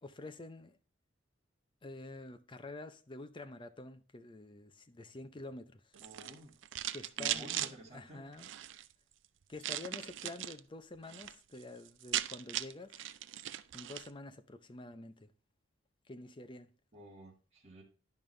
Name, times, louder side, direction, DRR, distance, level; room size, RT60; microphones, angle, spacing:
voice 1, 0.0-0.8 1.8-5.8 6.9-8.5 9.5-13.1 13.7-15.3 16.1-16.7, left 2 dB, 25° left, 0.7 m, -48 dB
sound 1, 5.9-7.7 8.3-8.9 9.6-10.6 10.9-11.3 11.6-11.7 11.9-14.1, right 12 dB, 65° right, 0.4 m, -38 dB
voice 2, 6.0-6.5 7.2-8.2 16.9-17.8, right 1 dB, 35° right, 1.9 m, -52 dB
10.5 x 5.4 x 3.2 m
head